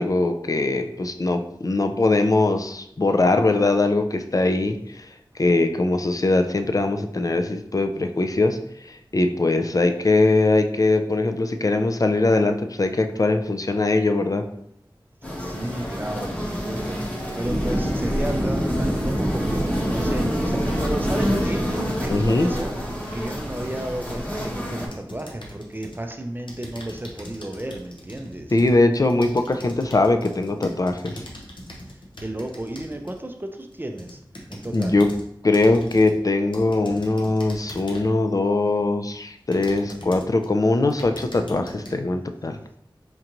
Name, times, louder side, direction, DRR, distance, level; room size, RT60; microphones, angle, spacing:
voice 1, 0.0-5.1 5.4-8.6 8.8-14.4 22.1-22.5 28.5-31.2 34.7-35.1 35.4-42.6, left 2 dB, 45° left, 7 dB, 0.4 m, -21 dB
sound 1, 15.2-24.9, equal, 20° left, 0.9 m, -29 dB
voice 2, 15.4-22.7 23.1-28.5 32.2-34.2 34.5-34.9, right 1 dB, 25° right, 4 dB, 0.4 m, -33 dB
sound 2, 17.4-23.4, equal, 45° right, 1.2 m, -26 dB
sound 3, 24.9-26.0 26.5-33.2 33.7-35.2 35.5-36.2 36.5-38.2 38.8-38.9 39.5-40.5 40.8-41.9, left 1 dB, 70° left, 0.7 m, -41 dB
4.5 x 2.5 x 2.9 m, 0.73 s
wide cardioid pair, 55°, 9 cm